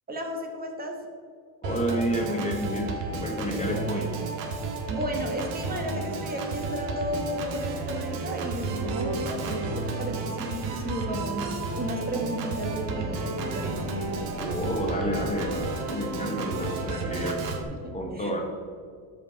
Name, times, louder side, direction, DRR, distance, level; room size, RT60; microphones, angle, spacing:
voice 1, 0.1-1.0 4.9-13.8 17.8-18.3, equal, 20° right, 3 dB, 1.1 m, -33 dB
voice 2, 1.6-4.1 14.4-17.4 17.9-18.4, equal, 15° left, 1 dB, 1.0 m, -30 dB
Organ, 1.6-17.6, right 3 dB, 85° right, 1.5 m, -32 dB
13.0 x 5.2 x 4.5 m, 2.2 s
cardioid pair, 155°, 44 cm